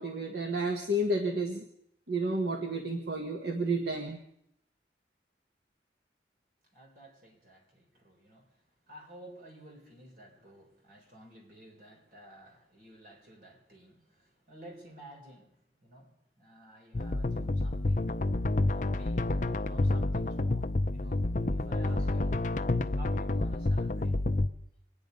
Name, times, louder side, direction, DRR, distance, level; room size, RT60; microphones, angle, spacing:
voice 1, 0.0-1.6 2.1-4.2, right 1 dB, 70° right, 4 dB, 1.3 m, -31 dB
voice 2, 6.7-8.5 8.9-18.1 18.7-19.2 19.6-21.2 21.5-22.5 22.9-24.1, right 1 dB, 50° right, 0 dB, 3.9 m, -52 dB
sound 1, 16.9-24.5, left 2 dB, 45° left, 0.6 m, -29 dB
25.5 x 10.0 x 5.3 m, 0.76 s
head